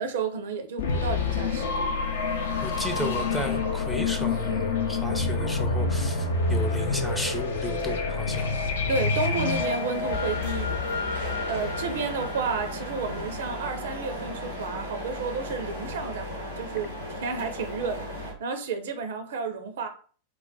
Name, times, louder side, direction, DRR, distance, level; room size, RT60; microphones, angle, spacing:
voice 1, 0.0-2.0 2.3-2.4 8.9-19.9, right 4 dB, 60° right, 7 dB, 0.4 m, -32 dB
sound 1, 0.8-13.5, left 4 dB, 60° left, 0.4 m, -28 dB
voice 2, 2.6-8.5, left 1 dB, 5° left, 4 dB, 0.5 m, -33 dB
sound 2, 9.3-18.3, equal, 90° left, 0.9 m, -36 dB
2.3 x 2.1 x 3.8 m, 0.42 s
figure-of-eight pair, 90°, 0 cm